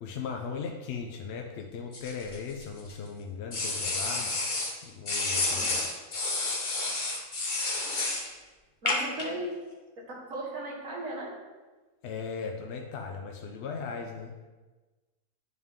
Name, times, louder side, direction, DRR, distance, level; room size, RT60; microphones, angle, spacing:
voice 1, 0.0-4.4 4.8-5.9 12.0-14.4, left 5 dB, 60° left, 3 dB, 0.7 m, -38 dB
sound 1, 1.9-2.9 3.5-4.7 5.0-8.3 8.9-9.2, left 3 dB, 40° left, 1.0 m, -30 dB
voice 2, 5.4-5.8 8.8-9.5 10.0-11.4, right 1 dB, 70° right, -3 dB, 1.9 m, -37 dB
9.8 x 3.6 x 3.6 m, 1.2 s
omnidirectional pair, 1.5 m